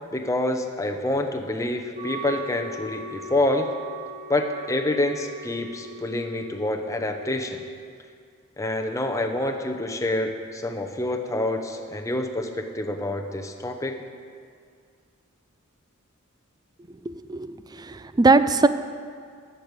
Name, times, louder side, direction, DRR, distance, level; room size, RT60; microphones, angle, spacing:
voice 1, 0.1-3.7 4.3-7.6 8.6-14.0, left 1 dB, 15° left, 4 dB, 0.8 m, -27 dB
Wind instrument woodwind instrument, 1.9-7.8, right 1 dB, 50° right, 1.3 m, -40 dB
voice 2, 17.1-18.7, right 3 dB, 20° right, 12 dB, 0.4 m, -20 dB
11.0 x 6.8 x 8.2 m, 2.1 s
head